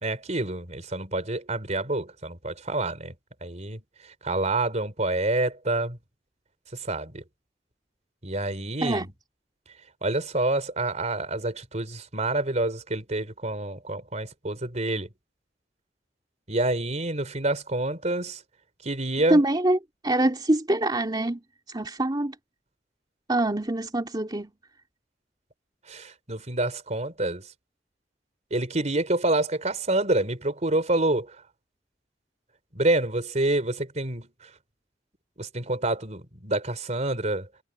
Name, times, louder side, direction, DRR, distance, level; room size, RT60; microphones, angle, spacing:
voice 1, 0.0-3.1 3.4-3.8 4.2-6.0 6.9-7.2 8.2-9.0 10.0-15.1 16.5-18.4 18.8-19.4 25.9-27.5 28.5-31.4 32.7-34.3 35.4-37.5, right 2 dB, 40° right, 4.1 m, -27 dB
voice 2, 19.3-19.8 20.0-21.4 21.7-22.4 23.3-24.5, right 1 dB, 25° right, 2.9 m, -24 dB
head